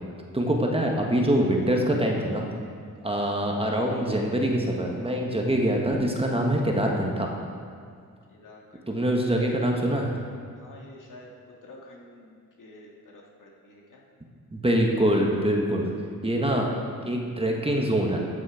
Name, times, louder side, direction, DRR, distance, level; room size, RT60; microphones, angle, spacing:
voice 1, 0.3-2.5 3.0-7.3 8.9-10.1 14.5-15.9 16.2-16.8 17.0-18.2, right 1 dB, 15° right, 0 dB, 1.4 m, -24 dB
voice 2, 8.3-9.1 10.6-11.3 11.6-14.0, left 2 dB, 60° left, -2 dB, 2.0 m, -49 dB
13.5 x 6.3 x 4.9 m, 2.1 s
cardioid pair, 75°, 34 cm